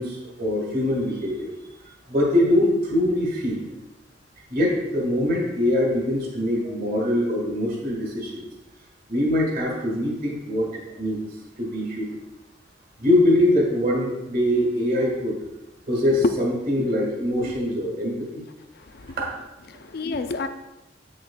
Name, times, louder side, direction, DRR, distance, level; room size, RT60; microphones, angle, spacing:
voice 1, 0.0-1.5 2.1-3.6 4.5-8.5 9.1-11.2 11.6-12.1 13.0-15.4 15.9-18.3 19.2-19.3, left 1 dB, 50° right, -3 dB, 1.9 m, -23 dB
voice 2, 19.7-20.5, left 3 dB, 55° left, 9 dB, 0.5 m, -27 dB
8.9 x 6.5 x 2.3 m, 1.0 s
head